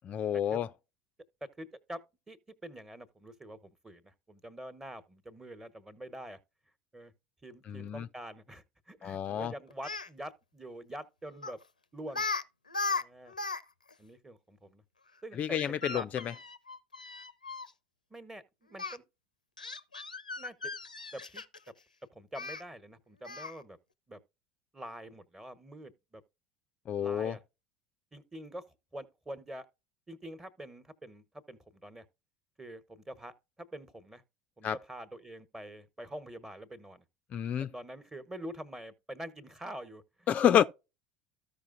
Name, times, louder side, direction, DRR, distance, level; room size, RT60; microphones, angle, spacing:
voice 1, 0.0-0.7 7.7-8.1 9.0-9.5 15.4-16.3 26.9-27.4 34.6-34.8 37.3-37.7 40.3-40.6, left 9 dB, 35° left, 0.4 m, -29 dB
voice 2, 1.4-6.4 6.9-7.1 7.4-11.6 11.9-12.2 12.8-13.3 14.0-14.8 15.2-15.6 15.8-16.1 18.1-19.0 20.4-20.7 21.1-21.4 22.1-23.8 24.1-24.2 24.7-26.2 27.0-27.4 28.1-28.7 28.9-29.7 30.1-32.0 32.6-34.2 34.6-37.0 37.7-40.3, right 1 dB, 10° right, 1.2 m, -45 dB
Speech, 9.7-10.1 11.4-11.6 12.1-12.4 12.7-13.6 13.9-14.0 15.5-17.7 18.8-19.0 19.6-21.7 22.3-22.6 23.2-23.6, left 4 dB, 85° left, 0.5 m, -37 dB
14.5 x 5.1 x 2.6 m
figure-of-eight pair, 70°, 4 cm